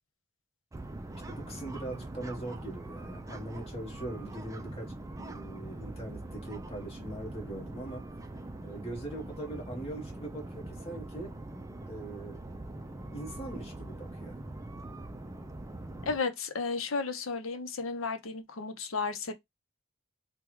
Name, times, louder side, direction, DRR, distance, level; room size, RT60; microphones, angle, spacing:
sound 1, 0.7-16.2, right 2 dB, 15° right, 0.3 m, -43 dB
voice 1, 1.3-8.1 8.6-11.3 11.9-12.4 13.1-14.4, right 1 dB, 30° left, 1.3 m, -41 dB
voice 2, 16.0-19.3, left 4 dB, 75° left, 0.7 m, -33 dB
3.4 x 2.2 x 3.0 m
head